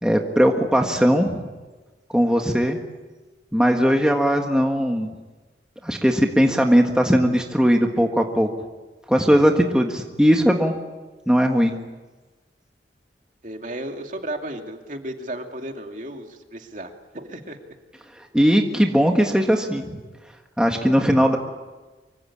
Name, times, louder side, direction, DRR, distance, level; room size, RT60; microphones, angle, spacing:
voice 1, 0.0-1.5 2.1-2.8 3.5-5.1 5.8-8.5 9.1-10.7 11.3-11.7 18.2-20.0 20.6-21.4, equal, 5° right, 2 dB, 1.6 m, -19 dB
voice 2, 13.4-17.6, right 1 dB, 45° right, 4 dB, 2.6 m, -34 dB
25.5 x 24.0 x 8.8 m, 1.2 s
head